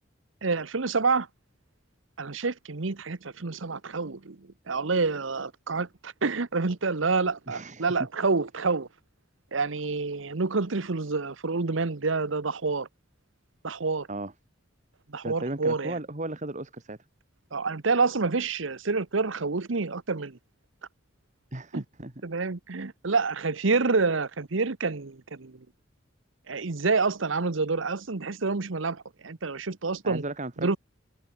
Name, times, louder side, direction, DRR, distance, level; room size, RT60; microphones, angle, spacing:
voice 1, 0.4-1.3 2.2-8.9 9.5-12.9 13.6-14.1 15.1-15.9 17.5-20.4 21.7-21.8 22.2-25.6 26.5-30.2 30.6-30.8, right 4 dB, 75° right, 1.0 m, -28 dB
voice 2, 7.5-7.9 14.1-14.3 15.2-17.0 21.5-22.1 30.0-30.8, right 2 dB, 40° right, 2.0 m, -35 dB
head